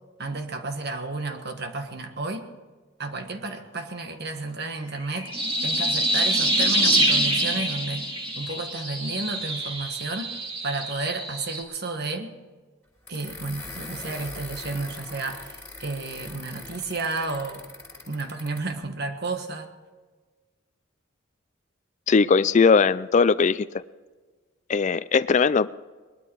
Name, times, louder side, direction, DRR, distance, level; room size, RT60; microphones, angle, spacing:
voice 1, 0.2-2.5 3.0-5.3 5.6-8.1 8.3-10.3 10.6-12.3 13.1-17.6 18.1-19.7, right 3 dB, 55° right, 6 dB, 1.5 m, -32 dB
sound 1, 5.0-11.6, right 1 dB, 25° right, 2.3 m, -25 dB
sound 2, 13.1-18.7, left 2 dB, 10° left, 3.6 m, -41 dB
voice 2, 22.1-23.7 24.7-25.7, left 5 dB, 35° left, 15 dB, 0.4 m, -19 dB
20.5 x 12.0 x 4.7 m, 1.4 s
head